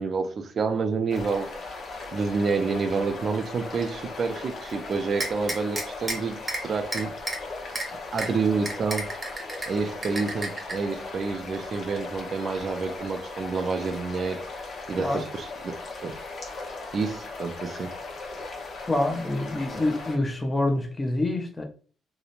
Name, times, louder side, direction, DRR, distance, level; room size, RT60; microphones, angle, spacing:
voice 1, 0.0-1.5 2.1-7.1 8.1-9.1 9.7-14.4 14.9-15.8 16.0-16.2 16.9-17.9, right 4 dB, 50° right, 0.4 m, -28 dB
sound 1, 1.1-20.2, left 3 dB, 55° left, 0.7 m, -38 dB
sound 2, 5.2-6.2 6.5-6.6 6.9-7.4 7.8-7.9 8.2-8.3 8.7-9.7 10.0-10.7, right 2 dB, 30° right, 0.8 m, -30 dB
voice 2, 18.9-21.6, left 2 dB, 20° left, 0.6 m, -26 dB
2.8 x 2.0 x 2.5 m
cardioid pair, 90°, 0 cm